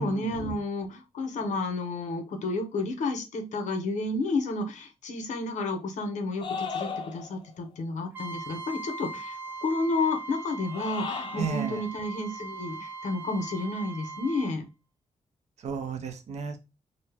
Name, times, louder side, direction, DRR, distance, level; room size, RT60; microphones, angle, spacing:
voice 1, 0.0-9.4 9.6-14.6, left 2 dB, 75° left, 5 dB, 0.7 m, -31 dB
sound 1, 6.4-7.5 10.6-11.6, left 5 dB, 40° left, 0.4 m, -35 dB
Trumpet, 8.1-14.5, right 3 dB, 15° right, 0.6 m, -40 dB
voice 2, 11.4-11.8 15.6-16.6, right 5 dB, 65° right, 6 dB, 0.6 m, -32 dB
2.6 x 2.0 x 3.3 m, 0.27 s
wide cardioid pair, 165°, 12 cm